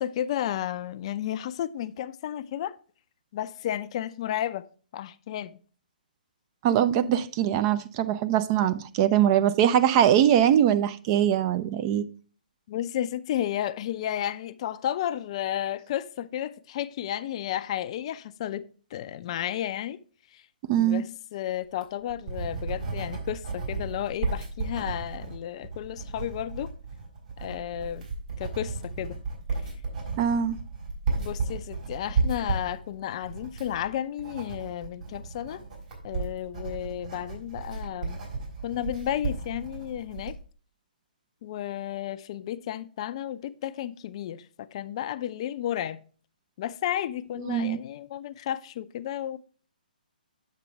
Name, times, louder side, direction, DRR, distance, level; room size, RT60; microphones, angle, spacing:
voice 1, 0.0-2.8 3.3-4.7 4.9-5.6 12.7-18.6 18.9-20.0 20.3-20.4 20.7-26.7 27.4-28.1 28.4-29.2 31.2-35.6 36.0-38.2 38.6-40.3 41.4-46.0 46.6-49.4, left 11 dB, 40° left, 0.4 m, -32 dB
voice 2, 6.6-12.0 20.7-21.0 30.2-30.6 47.5-47.8, right 10 dB, 30° right, 0.5 m, -22 dB
Writing, 21.6-40.4, right 4 dB, 55° right, 4.1 m, -34 dB
8.3 x 6.6 x 3.3 m
figure-of-eight pair, 130°, 5 cm